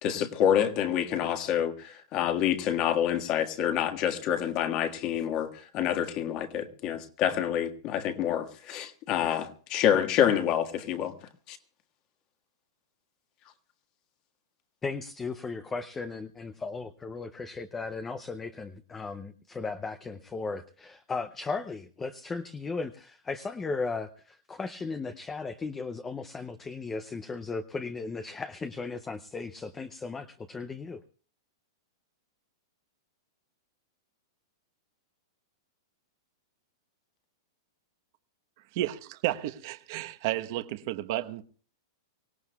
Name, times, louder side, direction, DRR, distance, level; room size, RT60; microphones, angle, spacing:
voice 1, 0.0-11.1 11.5-11.6, left 9 dB, 35° left, 1.6 m, -27 dB
voice 2, 14.8-31.0, left 4 dB, 10° left, 0.6 m, -36 dB
voice 3, 38.7-41.4, right 14 dB, 45° right, 1.0 m, -32 dB
25.0 x 17.0 x 2.3 m
supercardioid pair, 155°, 2 cm